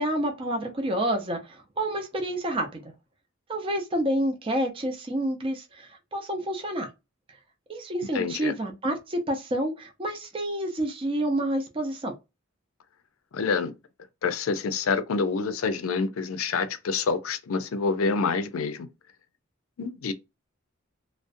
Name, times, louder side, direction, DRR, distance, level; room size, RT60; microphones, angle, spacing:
voice 1, 0.0-2.8 3.5-6.9 7.7-12.1, right 1 dB, 25° right, 0.5 m, -29 dB
voice 2, 8.1-8.5 13.3-13.7 14.2-18.9 19.8-20.1, left 4 dB, 90° left, 0.4 m, -27 dB
2.4 x 2.0 x 2.5 m
head